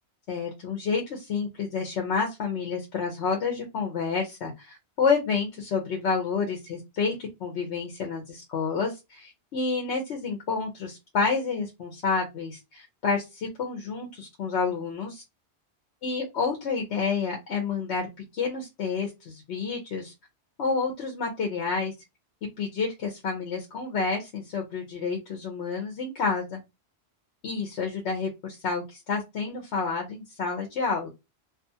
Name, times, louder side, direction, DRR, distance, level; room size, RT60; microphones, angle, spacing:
voice 1, 0.3-15.2 16.0-18.1 18.3-20.1 20.6-21.9 22.6-26.6 27.4-31.1, left 5 dB, 80° left, 0 dB, 1.0 m, -29 dB
2.5 x 2.4 x 2.7 m, 0.22 s
omnidirectional pair, 1.1 m